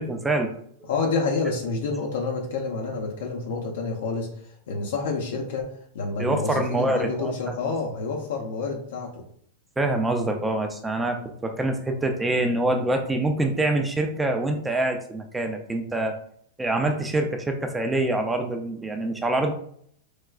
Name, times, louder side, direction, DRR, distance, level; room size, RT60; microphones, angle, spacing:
voice 1, 0.0-0.9 6.2-7.3 9.8-16.1 16.6-19.5, right 2 dB, 10° right, 4 dB, 0.4 m, -25 dB
voice 2, 0.9-4.3 4.7-5.7 5.9-9.2, left 4 dB, 75° left, 0 dB, 0.7 m, -28 dB
4.6 x 2.2 x 2.3 m, 0.63 s
supercardioid pair, 140°, 0 cm